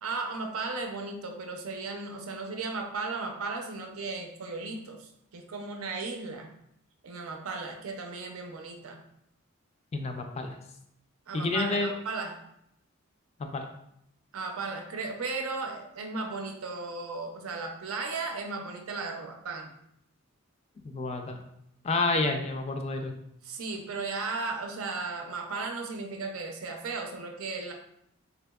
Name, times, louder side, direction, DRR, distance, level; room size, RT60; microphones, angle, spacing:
voice 1, 0.0-6.5 7.0-9.0 11.3-12.4 14.3-19.7 23.4-27.7, right 3 dB, 80° right, 3 dB, 0.5 m, -35 dB
voice 2, 9.9-10.6 11.3-11.9 13.4-13.7 20.8-21.4 21.8-23.2, left 3 dB, 30° left, 4 dB, 0.3 m, -29 dB
3.5 x 2.8 x 2.3 m, 0.76 s
head